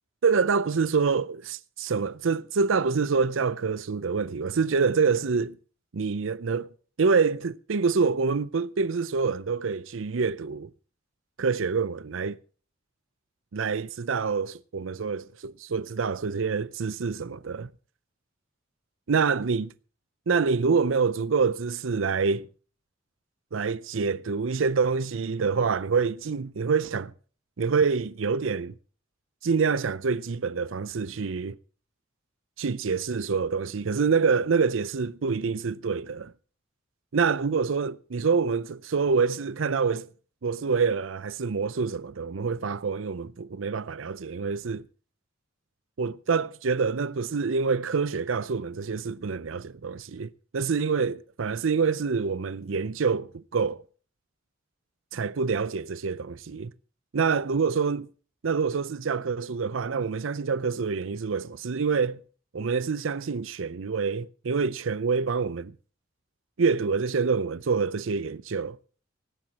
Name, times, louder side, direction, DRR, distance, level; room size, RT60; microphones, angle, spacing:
voice 1, 0.2-5.6 5.9-6.7 7.0-10.7 11.4-12.4 13.5-17.7 19.1-19.7 20.3-22.5 23.5-27.1 27.6-28.7 29.4-31.6 32.6-36.3 37.1-40.1 40.4-44.8 46.0-53.8 55.1-56.7 57.1-58.1 58.4-62.2 62.5-65.7 66.6-68.8, right 5 dB, 70° right, 0.6 m, -26 dB
18.0 x 16.5 x 2.9 m
head